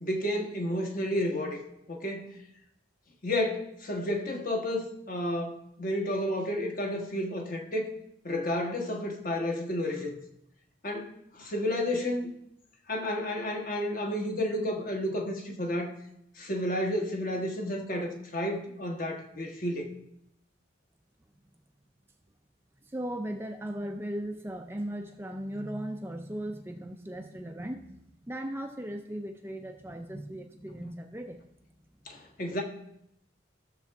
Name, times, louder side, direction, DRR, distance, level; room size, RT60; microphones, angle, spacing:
voice 1, 0.0-1.6 1.9-2.3 3.2-7.9 8.2-10.2 10.8-12.3 12.9-16.0 16.4-19.9 32.1-32.6, left 1 dB, 45° left, 1.3 m, -31 dB
voice 2, 22.8-31.4, right 1 dB, 10° right, 0.5 m, -37 dB
14.0 x 6.8 x 3.5 m
head